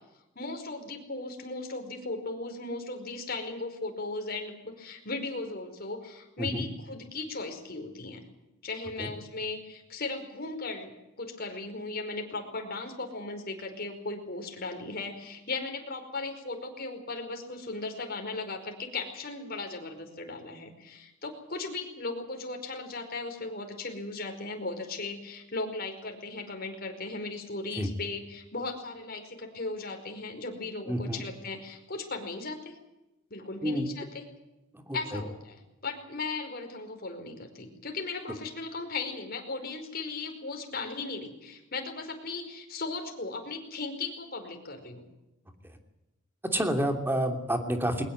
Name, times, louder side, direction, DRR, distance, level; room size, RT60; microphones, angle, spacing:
voice 1, 0.3-8.2 8.6-32.8 33.3-34.3 34.9-45.1, left 3 dB, 50° left, 4 dB, 5.0 m, -37 dB
voice 2, 30.9-31.2 33.6-33.9 34.9-35.2 46.5-48.0, equal, 10° right, 5 dB, 2.9 m, -29 dB
22.0 x 20.0 x 7.9 m, 0.95 s
head